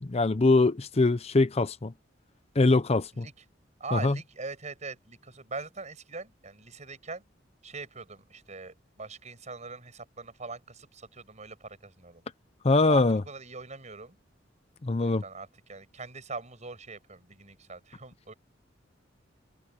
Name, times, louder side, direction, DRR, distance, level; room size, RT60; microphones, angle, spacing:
voice 1, 0.0-1.9 2.6-3.3 3.9-4.2 12.6-13.2 14.8-15.2, left 3 dB, 35° left, 0.6 m, -23 dB
voice 2, 3.8-7.2 7.6-12.2 12.8-14.2 15.0-18.3, right 3 dB, 40° right, 5.9 m, -42 dB
head